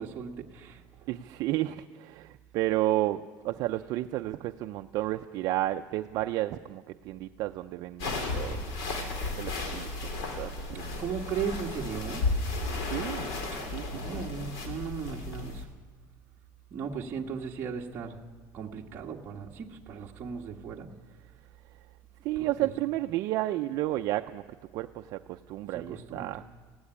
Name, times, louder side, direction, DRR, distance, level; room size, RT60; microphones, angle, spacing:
voice 1, 0.0-1.1 10.7-12.2 13.5-13.6 13.9-15.7 16.7-18.2 18.5-20.9 22.4-22.7 25.7-26.3, right 6 dB, 30° right, -2 dB, 1.4 m, -37 dB
voice 2, 1.1-8.6 9.4-11.0 12.9-13.3 13.7-14.3 22.2-24.4 24.7-26.5, right 15 dB, 55° right, 7 dB, 0.5 m, -32 dB
sound 1, 8.0-15.6, left 3 dB, 80° left, 3.6 m, -34 dB
17.0 x 16.0 x 9.9 m, 1.4 s
cardioid pair, 170°, 8 cm